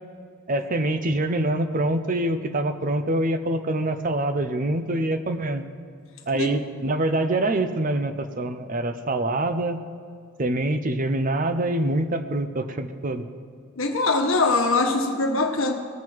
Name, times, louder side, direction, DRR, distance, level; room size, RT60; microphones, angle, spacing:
voice 1, 0.5-5.6 6.3-9.8 10.4-13.3, right 1 dB, 35° right, 9 dB, 0.6 m, -25 dB
voice 2, 13.8-15.7, left 3 dB, 60° left, 3 dB, 1.3 m, -22 dB
19.0 x 7.6 x 4.6 m, 2.3 s
head